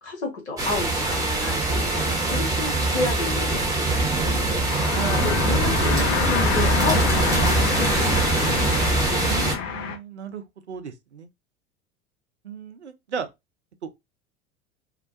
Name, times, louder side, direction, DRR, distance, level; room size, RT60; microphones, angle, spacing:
voice 1, 0.0-4.6 5.2-8.7, left 2 dB, 75° left, 1.1 m, -31 dB
sound 1, 0.6-9.5, right 2 dB, 10° right, 0.9 m, -23 dB
sound 2, 4.1-10.0, left 8 dB, 40° left, 0.6 m, -28 dB
voice 2, 5.0-5.4 9.3-11.3 12.4-13.3 13.8-13.9, right 7 dB, 85° right, 0.5 m, -35 dB
2.8 x 2.1 x 2.5 m
figure-of-eight pair, 75°, 33 cm